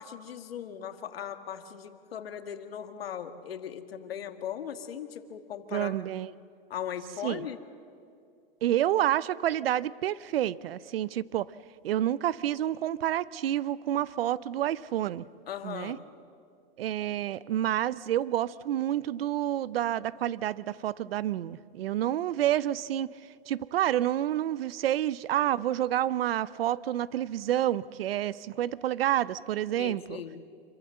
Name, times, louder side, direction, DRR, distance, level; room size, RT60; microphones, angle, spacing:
voice 1, 0.0-6.0 6.7-7.6 15.5-16.1 29.8-30.4, left 9 dB, 85° left, 9 dB, 1.7 m, -38 dB
voice 2, 5.7-6.3 7.2-7.5 8.6-11.5 11.8-15.2 15.6-16.0 16.8-23.1 23.5-30.2, right 12 dB, 80° right, 20 dB, 0.6 m, -29 dB
26.5 x 15.0 x 7.5 m, 2.4 s
supercardioid pair, 165°, 29 cm